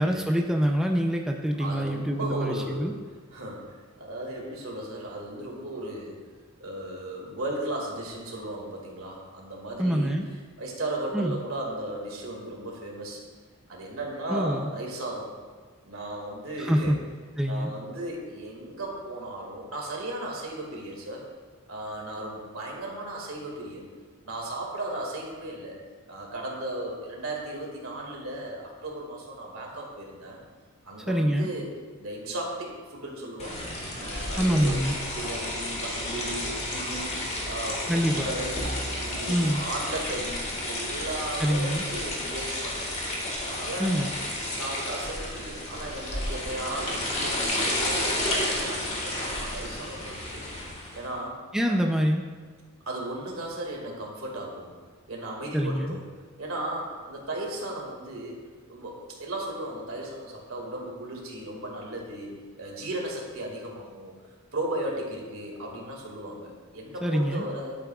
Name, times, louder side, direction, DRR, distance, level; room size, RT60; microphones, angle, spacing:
voice 1, 0.0-2.9 9.8-10.2 11.1-11.4 14.3-14.7 16.6-17.0 17.4-17.7 31.1-31.5 34.4-34.9 37.9-38.3 39.3-39.6 41.4-41.8 43.8-44.1 51.5-52.2 55.5-56.0 67.0-67.4, equal, 5° right, 2 dB, 0.4 m, -25 dB
voice 2, 1.6-2.9 3.3-6.2 6.6-10.1 10.6-13.2 13.7-15.3 15.9-16.9 17.5-21.2 21.7-23.8 24.2-25.8 26.1-30.4 30.8-31.7 32.0-33.7 34.0-34.8 35.1-38.7 38.9-42.9 43.5-43.9 44.6-50.5 50.9-51.4 51.7-51.8 52.9-54.8 55.1-56.0 56.4-58.4 58.7-62.3 62.6-64.1 64.5-67.7, right 1 dB, 75° right, -1 dB, 2.0 m, -36 dB
sound 1, 33.4-51.1, left 1 dB, 30° left, 1.7 m, -31 dB
12.0 x 8.4 x 2.3 m, 1.5 s
head